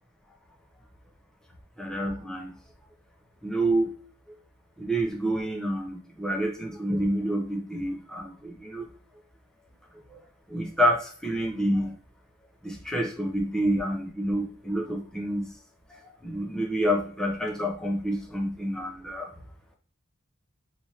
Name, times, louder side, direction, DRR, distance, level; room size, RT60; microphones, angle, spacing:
voice 1, 1.8-2.5 3.4-3.9 4.8-8.9 10.1-10.2 10.5-11.9 12.6-15.5 16.2-19.3, right 1 dB, 5° left, 0 dB, 0.6 m, -28 dB
4.3 x 2.6 x 2.8 m, 0.43 s
head